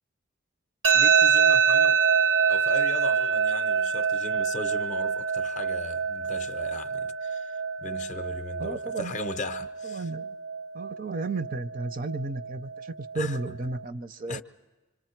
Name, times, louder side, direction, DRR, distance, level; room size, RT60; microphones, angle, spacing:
sound 1, 0.8-13.8, right 6 dB, 80° right, 1.1 m, -26 dB
voice 1, 0.9-2.0 2.5-10.0 13.1-13.4 14.3-14.4, left 2 dB, 40° left, 0.6 m, -38 dB
voice 2, 8.6-9.2 9.8-10.4 10.7-14.4, right 3 dB, 45° right, 0.6 m, -33 dB
25.5 x 25.5 x 4.5 m
head